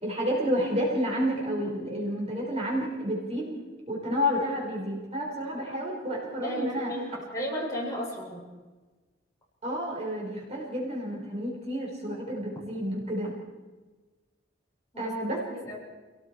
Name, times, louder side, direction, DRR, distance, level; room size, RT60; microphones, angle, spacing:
voice 1, 0.0-3.6 3.9-6.9 9.6-13.3 15.0-15.4, equal, 35° right, -3 dB, 5.5 m, -30 dB
voice 2, 6.4-7.0 7.3-8.4 14.9-15.1 15.6-15.8, equal, 20° left, -4 dB, 6.8 m, -33 dB
29.0 x 18.5 x 4.9 m, 1.3 s
head